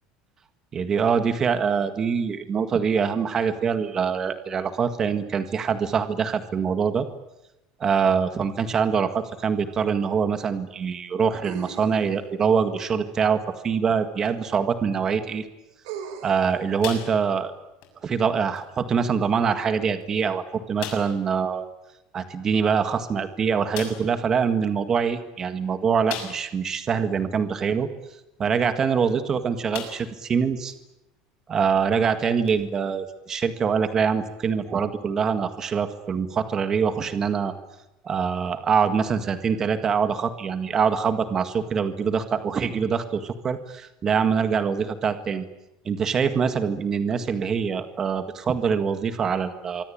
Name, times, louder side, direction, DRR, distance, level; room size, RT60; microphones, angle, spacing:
voice 1, 0.7-7.1 7.8-15.4 16.2-17.5 18.0-21.6 22.1-27.9 28.4-30.7 31.5-37.5 38.0-45.5 45.8-49.8, right 6 dB, 20° right, 9 dB, 1.8 m, -24 dB
sound 1, 9.3-9.4 11.4-12.4 14.2-14.3 15.8-16.6, right 7 dB, 75° right, 5.6 m, -38 dB
sound 2, 16.8-17.5 17.8-18.0 18.5-18.7 19.5-19.6 20.0-20.1 20.8-21.2 22.9-23.0 23.7-24.1 26.1-26.7 27.2-27.3 29.1-29.3 29.7-30.2 30.7-30.8 32.4-32.5, left 9 dB, 60° left, 6.7 m, -36 dB
25.0 x 24.5 x 8.7 m, 0.93 s
cardioid pair, 175°, 2 cm